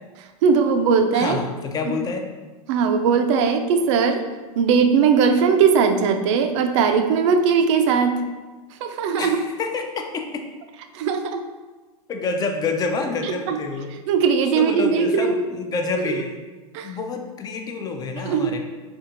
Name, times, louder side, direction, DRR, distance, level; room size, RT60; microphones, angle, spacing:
voice 1, 0.4-1.4 1.8-2.0 2.7-4.2 4.6-8.2 8.8-9.4 10.9-11.4 13.2-13.6 14.1-15.5 16.7-16.9 18.2-18.6, right 6 dB, 55° right, 6 dB, 0.4 m, -19 dB
voice 2, 1.1-2.3 9.2-10.5 12.1-13.9 14.5-16.4 16.8-18.6, left 4 dB, 20° left, 4 dB, 0.4 m, -28 dB
4.4 x 2.4 x 2.5 m, 1.3 s
hypercardioid pair, 95°, 19 cm